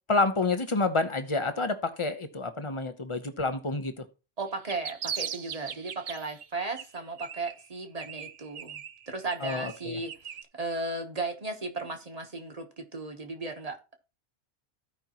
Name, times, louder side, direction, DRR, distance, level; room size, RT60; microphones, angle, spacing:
voice 1, 0.1-4.0 9.4-10.0, left 3 dB, 30° left, 0.8 m, -28 dB
voice 2, 4.4-8.8 9.1-13.8, right 3 dB, 35° right, 1.2 m, -35 dB
sound 1, 4.5-6.4 6.8-7.7 8.0-10.4, right 8 dB, 60° right, 0.8 m, -39 dB
15.0 x 5.3 x 3.0 m
omnidirectional pair, 1.1 m